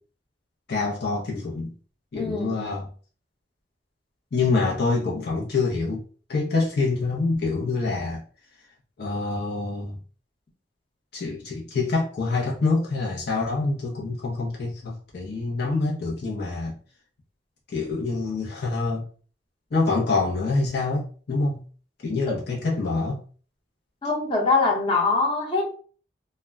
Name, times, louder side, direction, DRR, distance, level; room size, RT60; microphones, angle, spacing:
voice 1, 0.7-1.7 2.1-2.9 4.3-6.0 6.3-8.2 9.0-10.0 11.1-16.8 17.7-19.0 19.7-21.6 22.0-23.2, left 3 dB, 60° left, 0.6 m, -26 dB
voice 2, 2.1-2.7 22.3-22.4 24.0-25.7, left 3 dB, 30° left, 0.8 m, -23 dB
2.1 x 2.1 x 3.4 m
head